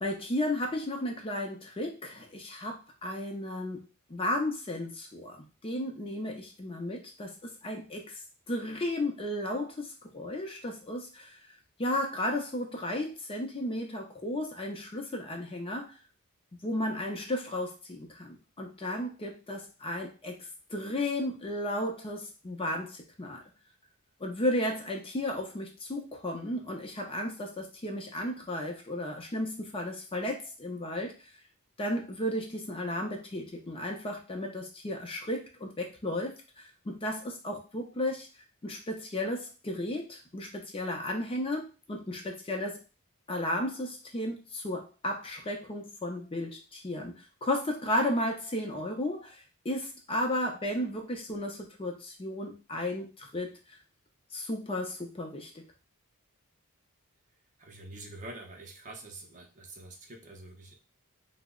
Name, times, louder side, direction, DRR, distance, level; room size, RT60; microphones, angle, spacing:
voice 1, 0.0-3.8 4.1-8.2 8.5-11.4 11.8-16.0 16.6-23.4 24.2-31.3 31.8-38.3 38.6-42.8 43.3-53.5 54.3-55.7, left 1 dB, 25° left, 2 dB, 0.5 m, -34 dB
voice 2, 57.6-60.8, right 2 dB, 35° right, 2 dB, 0.6 m, -46 dB
2.8 x 2.0 x 3.6 m, 0.31 s
head